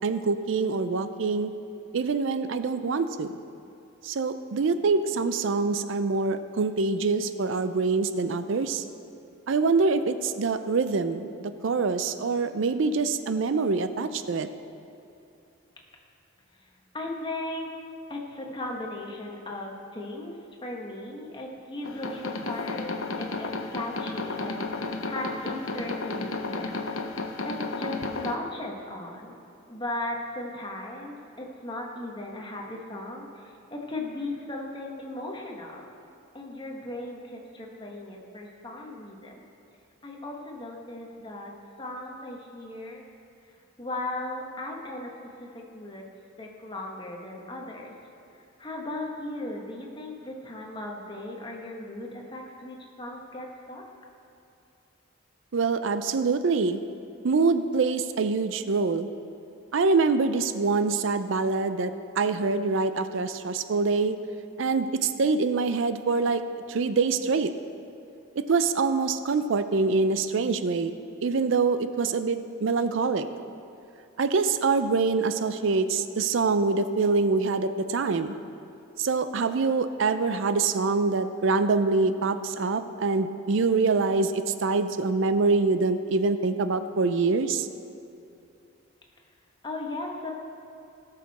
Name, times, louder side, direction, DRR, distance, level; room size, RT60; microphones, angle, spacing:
voice 1, 0.0-1.5 1.9-3.3 4.0-8.8 9.5-14.5 55.5-56.8 57.2-59.1 59.7-64.2 64.6-66.4 66.7-67.5 68.5-70.9 71.2-73.3 74.2-78.3 79.0-87.7, right 4 dB, 65° right, 10 dB, 0.5 m, -25 dB
voice 2, 16.9-17.7 18.1-20.3 20.6-29.3 29.7-35.9 36.3-39.5 40.0-41.5 41.8-43.0 43.8-46.1 46.4-47.9 48.6-53.8 89.6-90.3, left 1 dB, 25° left, 0 dB, 1.3 m, -37 dB
sound 1, 21.8-28.4, left 3 dB, 85° left, 0.8 m, -33 dB
17.5 x 6.6 x 4.1 m, 2.7 s
head